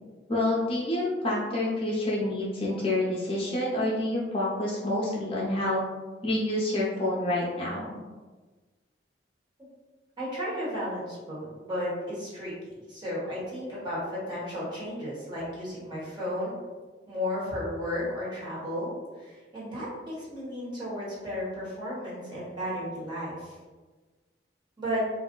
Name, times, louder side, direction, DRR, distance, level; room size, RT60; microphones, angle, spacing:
voice 1, 0.3-5.8 6.2-7.9, left 1 dB, 35° left, -5 dB, 0.5 m, -28 dB
voice 2, 10.2-14.0 14.3-16.5 17.1-18.9 19.2-23.5 24.8-25.0, equal, 25° right, -8 dB, 1.2 m, -34 dB
2.4 x 2.0 x 3.7 m, 1.3 s
head